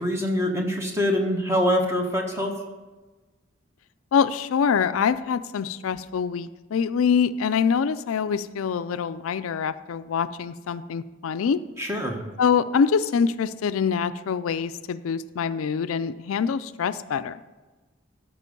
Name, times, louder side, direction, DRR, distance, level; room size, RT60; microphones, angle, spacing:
voice 1, 0.0-2.5 11.8-12.2, equal, 15° right, 2 dB, 1.1 m, -24 dB
voice 2, 4.1-11.6 12.4-17.3, left 6 dB, 85° left, 13 dB, 0.4 m, -25 dB
12.5 x 5.2 x 5.3 m, 1.2 s
head